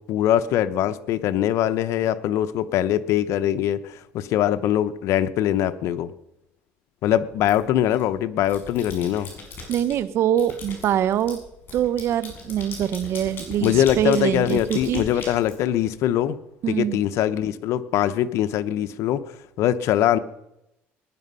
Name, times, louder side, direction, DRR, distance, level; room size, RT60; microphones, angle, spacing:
voice 1, 0.1-6.1 7.0-9.3 13.6-16.4 16.7-19.2 19.6-20.2, left 11 dB, 70° left, 12 dB, 0.8 m, -22 dB
sound 1, 7.5-8.0 8.4-10.0 10.4-16.1, left 4 dB, 45° left, 6.3 m, -39 dB
voice 2, 9.7-11.4 11.7-15.0 16.6-17.0, right 10 dB, 60° right, 14 dB, 0.9 m, -24 dB
19.5 x 10.5 x 5.6 m, 0.88 s
cardioid pair, 115°, 5 cm